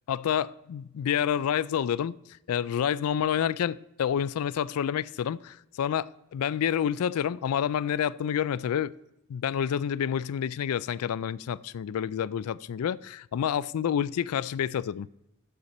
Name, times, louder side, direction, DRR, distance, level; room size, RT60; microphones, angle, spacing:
voice 1, 0.1-2.2 2.5-8.9 9.3-15.1, left 9 dB, 90° left, 0.3 m, -28 dB
12.0 x 8.0 x 4.2 m
head